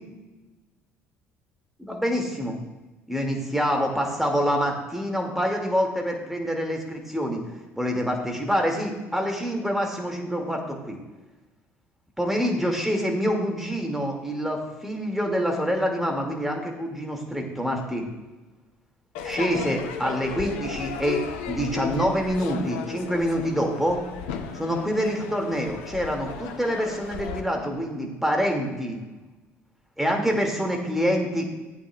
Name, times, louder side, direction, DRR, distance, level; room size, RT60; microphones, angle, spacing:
voice 1, 1.8-2.6 3.1-7.4 7.8-11.0 12.2-18.1 19.2-21.2 21.5-24.0 24.5-29.0 30.0-31.5, equal, 5° right, 1 dB, 2.1 m, -26 dB
Crowd / Fireworks, 19.1-27.4, left 7 dB, 65° left, 0.8 m, -35 dB
15.5 x 8.6 x 2.3 m, 1.2 s
figure-of-eight pair, 55°, 7 cm